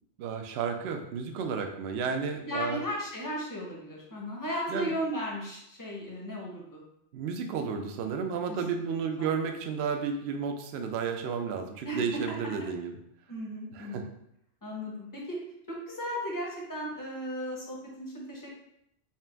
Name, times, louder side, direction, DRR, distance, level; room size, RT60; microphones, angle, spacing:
voice 1, 0.2-2.8 4.7-4.9 7.1-12.9 13.7-14.1, right 6 dB, 65° right, 5 dB, 0.7 m, -32 dB
voice 2, 2.4-6.8 8.5-8.9 9.2-9.3 11.8-12.1 13.3-14.1 14.6-15.4 15.7-18.6, equal, 20° left, -3 dB, 0.7 m, -36 dB
4.4 x 2.4 x 3.3 m, 0.78 s
omnidirectional pair, 1.3 m